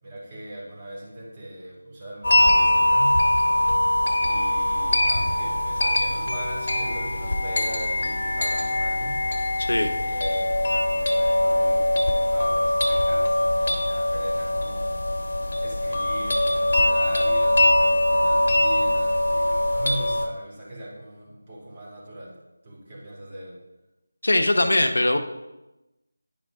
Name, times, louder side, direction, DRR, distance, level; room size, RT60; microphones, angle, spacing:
voice 1, 0.0-3.2 4.2-9.2 10.0-15.0 15.6-19.2 19.7-22.4 22.6-23.6, right 1 dB, 25° right, -6 dB, 2.9 m, -39 dB
sound 1, 2.2-20.3, left 1 dB, 55° left, 1.2 m, -22 dB
voice 2, 9.6-9.9 24.2-25.2, left 1 dB, 75° left, 5 dB, 0.9 m, -21 dB
10.5 x 5.1 x 3.6 m, 0.99 s
figure-of-eight pair, 165°, 0 cm